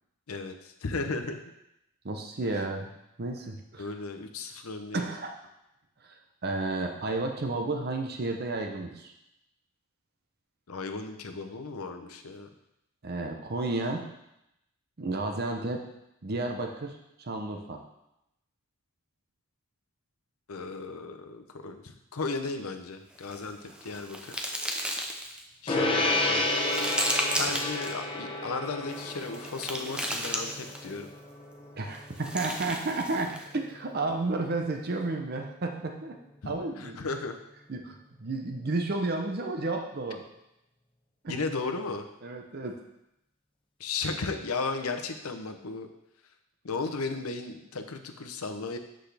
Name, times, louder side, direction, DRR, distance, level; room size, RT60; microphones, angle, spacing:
voice 1, 0.3-1.4 3.8-5.1 10.7-12.5 20.5-24.4 25.6-26.5 27.4-31.1 36.4-37.4 41.3-42.1 43.8-45.9 46.6-48.8, left 3 dB, 85° left, 6 dB, 0.7 m, -35 dB
voice 2, 2.0-2.9 3.2-3.9 4.9-5.3 6.0-6.2 6.4-9.1 13.0-14.1 15.0-15.9 16.2-17.8 31.8-36.2 36.5-37.0 37.7-40.2 41.2-41.3 42.2-42.8, right 2 dB, 45° right, 3 dB, 0.7 m, -32 dB
sound 1, 23.2-25.4 26.0-27.9 28.8-31.0 31.9-33.5, equal, 5° right, 0.6 m, -34 dB
Gong, 25.7-35.4, left 2 dB, 25° left, 0.9 m, -32 dB
8.0 x 6.3 x 3.4 m, 0.84 s
head